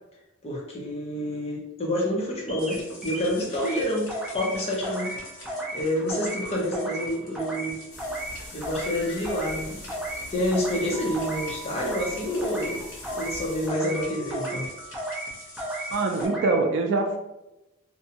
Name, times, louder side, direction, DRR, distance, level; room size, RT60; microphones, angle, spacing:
voice 1, 0.4-4.1 4.3-5.1 5.7-7.8 8.5-9.9 10.3-12.8 13.1-14.7, left 1 dB, 30° left, -3 dB, 0.7 m, -28 dB
sound 1, 2.5-2.8 3.0-3.8 4.1-4.6 4.8-5.2 5.5-5.8 6.1-6.4 6.7-7.1 7.4-7.7 8.0-8.3 8.6-9.0 9.2-9.6 9.9-10.2 10.5-10.9 11.1-11.5 11.8-12.1 12.4-12.8 13.0-13.4 13.7-14.0 14.3-14.7 14.9-15.3 15.6-15.9 16.2-16.5, right 1 dB, 5° right, 0.6 m, -33 dB
sound 2, 2.6-16.3, equal, 85° left, 1.0 m, -43 dB
sound 3, 7.9-13.7, left 1 dB, 55° left, 1.0 m, -43 dB
voice 2, 15.9-17.2, right 3 dB, 60° right, 3 dB, 0.3 m, -24 dB
2.6 x 2.2 x 2.7 m, 0.95 s
head